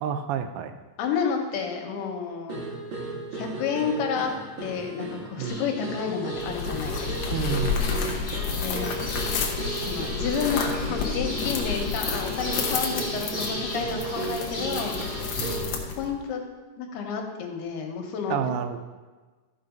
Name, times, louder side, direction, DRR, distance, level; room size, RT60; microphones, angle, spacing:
voice 1, 0.0-0.8 5.4-5.6 7.3-8.1 15.4-15.7 18.3-18.8, right 8 dB, 85° right, 8 dB, 2.5 m, -30 dB
voice 2, 1.0-2.6 3.3-4.3 4.6-7.4 8.6-8.9 9.8-15.4 16.0-16.4 16.8-18.5, left 6 dB, 90° left, 3 dB, 3.1 m, -30 dB
sound 1, 2.5-15.8, right 3 dB, 55° right, 1.4 m, -35 dB
sound 2, 5.5-15.6, left 1 dB, 20° left, 2.0 m, -37 dB
sound 3, 6.4-16.2, left 6 dB, 70° left, 1.7 m, -31 dB
13.0 x 5.5 x 5.2 m, 1.3 s
omnidirectional pair, 4.5 m